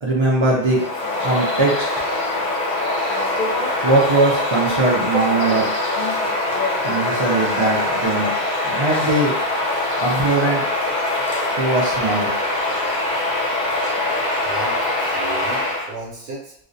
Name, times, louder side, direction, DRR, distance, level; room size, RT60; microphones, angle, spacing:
voice 1, 0.0-0.8 1.2-1.9 3.8-5.7 6.8-8.3 8.6-9.3 10.0-10.6 11.6-12.3, right 2 dB, 50° right, -4 dB, 0.3 m, -20 dB
Bird vocalization bird call bird song, 0.6-15.9, left 2 dB, 50° left, 0.7 m, -23 dB
voice 2, 14.4-16.5, right 3 dB, 75° right, -4 dB, 0.8 m, -35 dB
2.3 x 2.1 x 2.5 m, 0.72 s
omnidirectional pair, 1.0 m